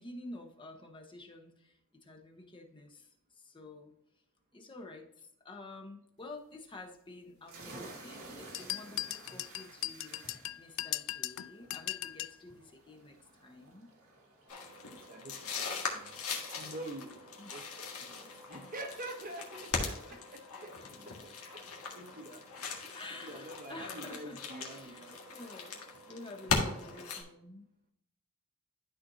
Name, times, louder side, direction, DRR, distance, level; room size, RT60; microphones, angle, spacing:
voice 1, 0.0-3.9 4.5-13.2 13.4-13.9 17.4-17.5 22.9-24.4 24.6-25.1 25.3-27.7, left 2 dB, 20° left, 3 dB, 1.0 m, -50 dB
sound 1, 7.4-20.8, right 2 dB, 85° right, 2.2 m, -55 dB
sound 2, 8.5-12.4, left 15 dB, 65° left, 0.3 m, -38 dB
sound 3, 14.5-27.2, left 4 dB, 80° left, 1.7 m, -39 dB
voice 2, 14.8-17.2 17.5-22.9 23.2-25.6, right 1 dB, 40° right, 4 dB, 1.1 m, -47 dB
12.5 x 4.3 x 2.7 m, 0.76 s
head